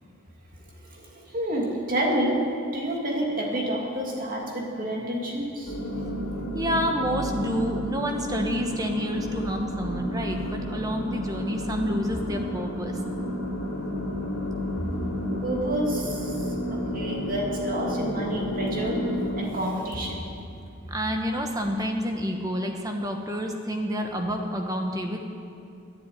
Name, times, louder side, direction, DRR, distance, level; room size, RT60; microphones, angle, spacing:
voice 1, 0.5-2.4 2.7-5.7 14.8-14.9 15.4-20.3, right 1 dB, 40° right, -1 dB, 2.6 m, -29 dB
sound 1, 5.7-19.4, equal, 75° left, 3.0 m, -31 dB
voice 2, 6.5-13.0 20.9-25.2, equal, 20° right, 3 dB, 1.2 m, -29 dB
11.0 x 10.5 x 9.3 m, 2.6 s
head